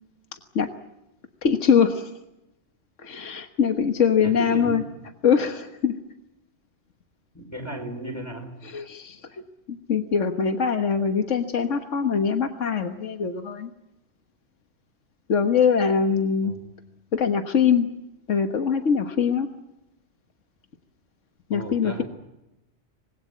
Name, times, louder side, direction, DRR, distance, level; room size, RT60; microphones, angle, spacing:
voice 1, 1.4-2.1 3.0-4.8 5.2-5.9 8.6-9.4 9.7-13.7 15.3-16.5 17.1-17.9 18.3-19.5 21.5-22.0, left 6 dB, 80° left, 6 dB, 1.7 m, -23 dB
voice 2, 4.2-4.8 7.3-8.5 16.4-16.6 21.5-22.0, right 1 dB, 15° left, 3 dB, 5.1 m, -34 dB
25.5 x 20.5 x 8.3 m, 0.93 s
omnidirectional pair, 1.3 m